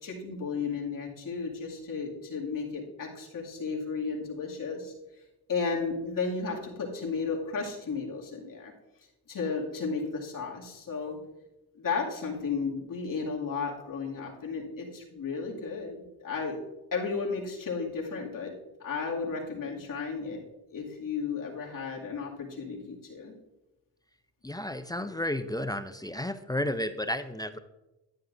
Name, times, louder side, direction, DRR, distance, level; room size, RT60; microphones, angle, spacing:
voice 1, 0.0-4.9 5.5-8.7 9.3-11.2 11.8-16.6 16.9-18.5 18.8-20.4 20.7-23.3, left 5 dB, 55° left, -2 dB, 2.3 m, -34 dB
voice 2, 24.4-27.6, left 1 dB, 10° left, 10 dB, 0.4 m, -32 dB
10.5 x 9.9 x 2.6 m, 1.0 s
cardioid pair, 75°, 40 cm